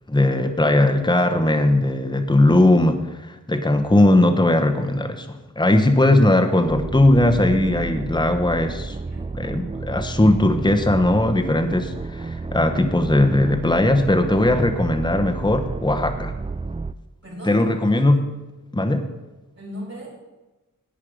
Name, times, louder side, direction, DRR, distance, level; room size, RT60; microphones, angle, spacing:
voice 1, 0.1-3.0 3.3-9.0 9.3-16.3 17.5-18.3 18.7-19.0, left 1 dB, 15° left, 6 dB, 0.9 m, -19 dB
sound 1, 6.6-16.9, right 3 dB, 20° right, 0.3 m, -31 dB
voice 2, 17.2-17.6 19.5-20.1, equal, 50° right, -5 dB, 4.0 m, -37 dB
11.0 x 8.4 x 5.1 m, 1.1 s
wide cardioid pair, 40°, 33 cm